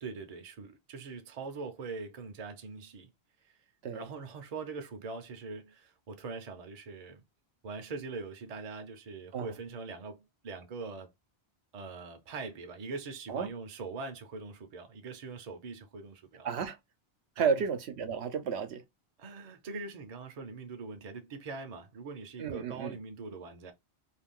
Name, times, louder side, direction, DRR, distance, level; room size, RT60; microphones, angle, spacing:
voice 1, 0.0-3.1 3.4-3.6 3.9-7.2 7.6-11.1 11.7-16.5 17.4-17.6 19.2-23.7, right 4 dB, 45° right, 0.6 m, -42 dB
voice 2, 16.4-16.8 17.4-18.8 22.4-23.0, right 6 dB, 80° right, 0.9 m, -32 dB
2.5 x 2.3 x 3.4 m
omnidirectional pair, 1.1 m